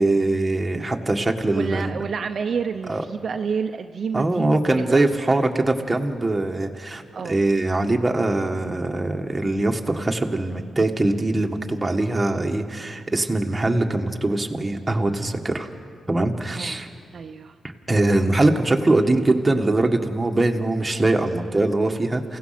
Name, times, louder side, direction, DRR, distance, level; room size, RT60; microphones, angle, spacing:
voice 1, 0.0-1.9 2.9-3.0 4.1-15.7 16.1-16.9 17.9-22.4, right 2 dB, 20° right, 2 dB, 1.8 m, -22 dB
voice 2, 1.5-4.6 4.9-5.0 7.1-7.4 16.5-16.8 17.1-17.6, right 6 dB, 55° right, 6 dB, 0.7 m, -29 dB
29.0 x 17.0 x 6.0 m, 2.1 s
cardioid pair, 85°, 0 cm